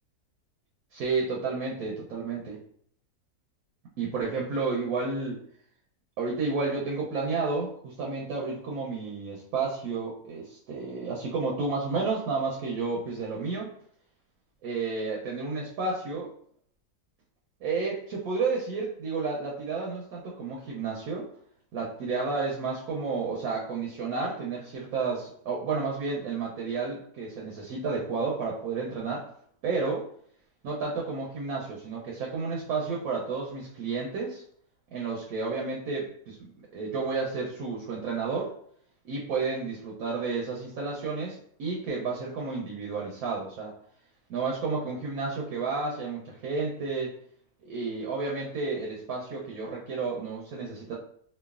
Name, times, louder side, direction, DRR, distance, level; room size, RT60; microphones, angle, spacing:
voice 1, 0.9-2.6 4.0-5.4 6.2-13.7 14.6-16.2 17.6-21.3 21.7-29.3 29.6-30.0 30.6-34.4 34.9-36.4 36.7-38.5 39.0-43.7 44.3-47.1 47.6-50.9, right 4 dB, 75° right, -2 dB, 1.0 m, -31 dB
3.0 x 2.3 x 2.3 m, 0.62 s
omnidirectional pair, 1.7 m